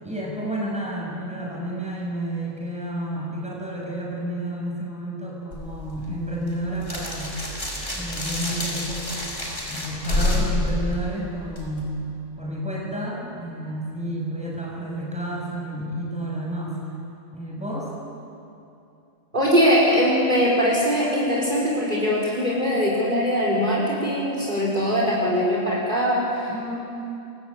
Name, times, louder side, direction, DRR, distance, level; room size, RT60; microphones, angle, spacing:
voice 1, 0.0-7.4 7.9-9.1 9.5-11.9 12.4-16.8 17.3-17.9 26.5-26.7, right 1 dB, 5° right, -3 dB, 7.4 m, -30 dB
sound 1, 5.5-11.8, left 2 dB, 70° left, 5.4 m, -28 dB
voice 2, 19.3-26.7, equal, 40° right, -4 dB, 5.3 m, -21 dB
28.0 x 23.5 x 9.0 m, 2.7 s
omnidirectional pair, 1.3 m